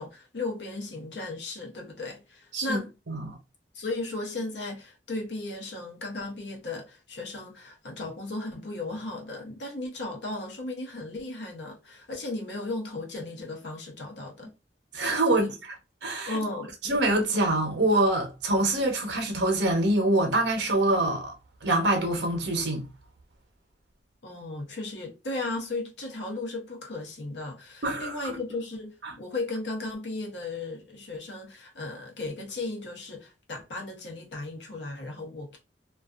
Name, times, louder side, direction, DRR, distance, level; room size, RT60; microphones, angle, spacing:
voice 1, 0.0-2.9 3.7-14.5 15.3-15.5 16.3-16.8 24.2-35.6, left 2 dB, 75° left, 0.8 m, -35 dB
voice 2, 2.5-3.4 14.9-15.5 16.0-16.4 16.8-21.3 21.6-22.8 27.8-28.3 29.0-29.1, right 2 dB, 75° right, 0.8 m, -25 dB
2.3 x 2.3 x 2.4 m
head